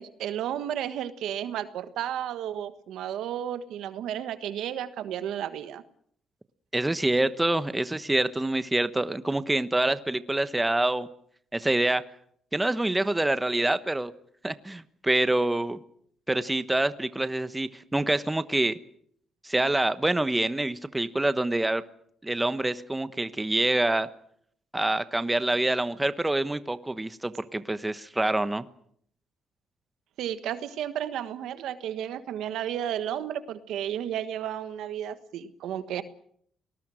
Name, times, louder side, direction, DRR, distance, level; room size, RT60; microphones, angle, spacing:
voice 1, 0.0-5.8 30.2-36.0, right 10 dB, 80° right, 12 dB, 1.4 m, -33 dB
voice 2, 6.7-11.1 11.5-12.0 12.5-14.1 14.4-15.8 16.3-18.8 19.4-21.8 22.2-24.1 24.7-28.6, right 2 dB, 15° right, 13 dB, 1.1 m, -26 dB
29.5 x 19.5 x 6.3 m, 0.66 s
cardioid pair, 90°, 0 cm